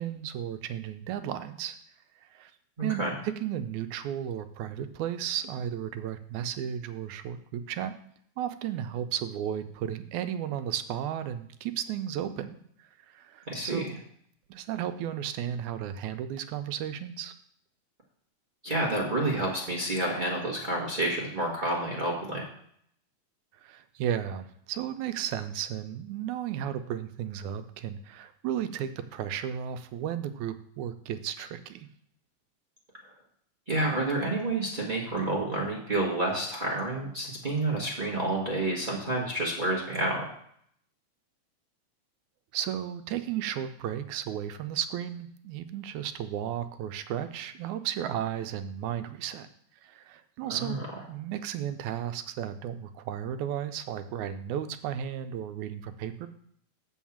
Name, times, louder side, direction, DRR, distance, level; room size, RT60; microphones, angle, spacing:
voice 1, 0.0-1.8 2.2-2.5 2.8-7.9 8.4-14.0 14.5-17.3 23.6-31.9 42.5-49.5 49.8-50.8 51.1-56.3, right 10 dB, 80° right, 9 dB, 2.0 m, -34 dB
voice 2, 2.8-3.1 13.5-13.8 18.6-22.4 33.7-40.2 50.5-50.8, right 2 dB, 30° right, -4 dB, 0.9 m, -29 dB
7.3 x 5.4 x 7.2 m, 0.66 s
omnidirectional pair, 3.4 m